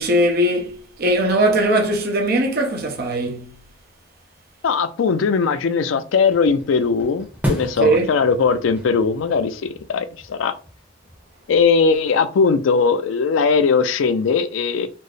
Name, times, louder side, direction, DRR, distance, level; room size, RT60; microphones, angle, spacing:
voice 1, 0.0-3.5 7.8-8.1, right 1 dB, 55° right, 0.8 m, -19 dB
voice 2, 4.6-9.6 9.9-10.5 11.5-14.9, left 5 dB, 85° left, 0.4 m, -19 dB
sound 1, 6.3-11.6, equal, 10° right, 0.9 m, -33 dB
4.3 x 2.0 x 3.2 m
head